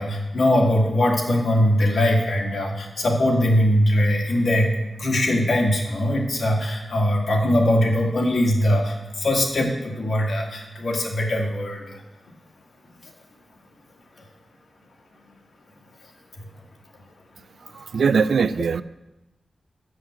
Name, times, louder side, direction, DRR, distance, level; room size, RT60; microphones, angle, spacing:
voice 1, 0.0-4.7 5.0-12.0, left 1 dB, 55° left, -1 dB, 2.0 m, -21 dB
voice 2, 17.7-18.8, right 5 dB, 75° right, 14 dB, 0.4 m, -21 dB
7.7 x 7.1 x 7.7 m, 0.99 s
wide cardioid pair, 140°, 0 cm